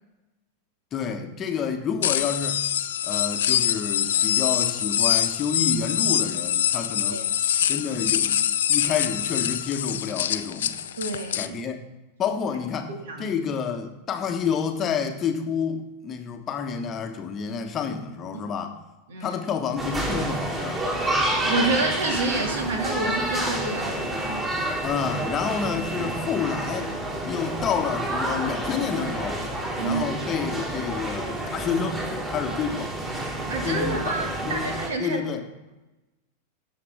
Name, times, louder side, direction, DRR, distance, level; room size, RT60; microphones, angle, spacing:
voice 1, 0.9-2.6 3.0-7.2 7.7-8.4 8.7-10.8 11.3-11.8 12.2-18.8 19.2-20.9 24.8-26.9 27.3-29.4 29.8-33.0 33.6-34.2 34.4-34.7 35.0-35.4, left 6 dB, 25° left, 5 dB, 1.2 m, -29 dB
sound 1, 2.0-11.5, left 10 dB, 60° left, 0.5 m, -24 dB
voice 2, 11.0-11.5 13.0-13.3 18.3-18.4 19.1-19.4 21.4-24.0 29.8-30.0 33.5-35.2, right 3 dB, 60° right, 4 dB, 2.0 m, -28 dB
sound 2, 19.8-34.9, right 1 dB, 20° right, 3.4 m, -29 dB
17.0 x 7.1 x 3.5 m, 1.0 s
figure-of-eight pair, 90°, 0 cm